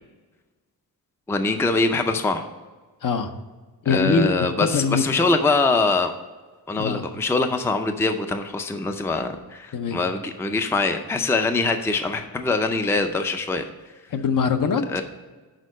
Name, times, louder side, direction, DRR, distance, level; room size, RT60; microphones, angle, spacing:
voice 1, 1.3-2.4 3.9-6.1 6.7-13.7 14.9-15.0, left 3 dB, 5° left, 7 dB, 0.4 m, -23 dB
voice 2, 3.0-3.3 3.8-5.1 6.8-7.1 9.7-10.0 14.1-15.0, left 5 dB, 55° left, 7 dB, 0.7 m, -23 dB
6.4 x 4.5 x 6.2 m, 1.3 s
wide cardioid pair, 135°, 38 cm